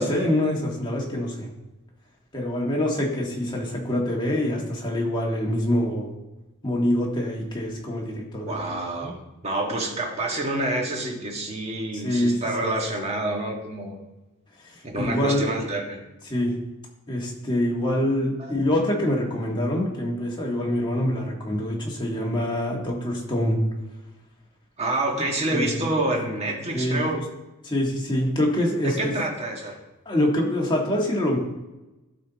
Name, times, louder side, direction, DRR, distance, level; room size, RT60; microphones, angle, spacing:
voice 1, 0.0-1.5 2.3-6.2 6.6-8.6 9.0-9.1 12.0-12.7 15.0-15.5 16.3-16.6 17.1-23.6 25.5-25.9 26.7-27.2 27.6-29.1 30.0-31.4, left 1 dB, 20° left, -1 dB, 1.6 m, -25 dB
voice 2, 8.4-9.2 9.4-14.0 14.8-16.0 18.4-18.6 24.8-27.2 28.8-29.8, right 2 dB, 30° right, 0 dB, 1.6 m, -28 dB
13.0 x 4.3 x 4.1 m, 1.0 s
head